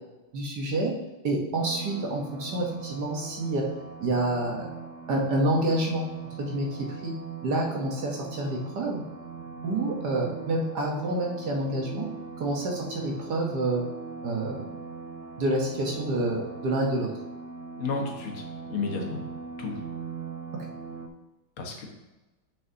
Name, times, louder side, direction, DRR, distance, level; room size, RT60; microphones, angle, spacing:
voice 1, 0.3-0.9 1.2-3.6 4.0-4.6 5.1-6.0 6.4-6.7 7.0-7.1 7.4-9.0 9.6-12.0 12.4-13.8 14.2-14.6 15.4-17.1, right 1 dB, 55° right, -1 dB, 1.5 m, -28 dB
sound 1, 1.6-21.1, right 6 dB, 75° right, 1.5 m, -41 dB
voice 2, 17.8-19.2 19.6-19.8 21.6-21.8, left 4 dB, 75° left, 1 dB, 2.0 m, -32 dB
9.2 x 5.5 x 2.7 m, 1.1 s
omnidirectional pair, 2.4 m